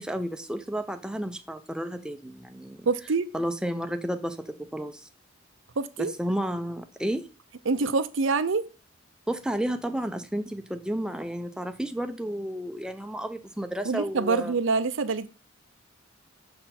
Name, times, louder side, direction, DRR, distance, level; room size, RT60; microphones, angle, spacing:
voice 1, 0.0-2.9 3.3-5.0 6.0-7.3 9.3-14.5, right 1 dB, 5° right, 0.6 m, -32 dB
voice 2, 2.9-3.3 5.8-6.1 7.7-8.7 13.8-15.3, right 4 dB, 70° right, 0.6 m, -25 dB
6.7 x 4.2 x 5.8 m
head